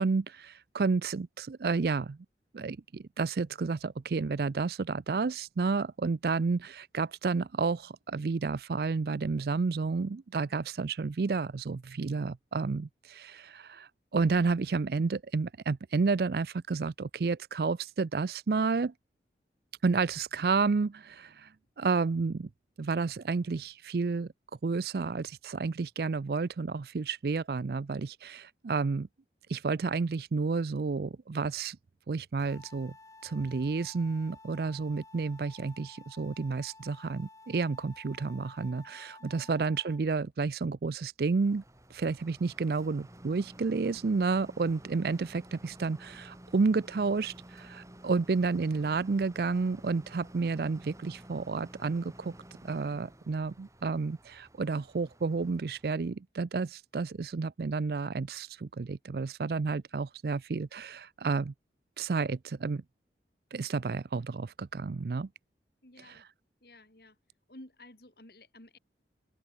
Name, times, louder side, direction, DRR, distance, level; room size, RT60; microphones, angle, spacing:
voice 1, 0.0-2.2 2.5-18.9 19.8-21.5 21.8-22.5 22.8-24.3 24.6-29.1 29.5-31.8 32.1-32.9 33.2-41.6 41.9-52.3 52.6-61.5 62.0-62.8 63.5-65.3, right 4 dB, 60° right, 0.4 m, -31 dB
sound 1, 32.4-40.0, left 3 dB, 20° left, 0.8 m, -54 dB
voice 2, 39.2-39.5 65.8-66.3 66.6-67.2 67.5-68.8, left 1 dB, 60° left, 3.6 m, -53 dB
sound 2, 41.4-56.1, right 1 dB, 20° right, 2.4 m, -52 dB
open air
head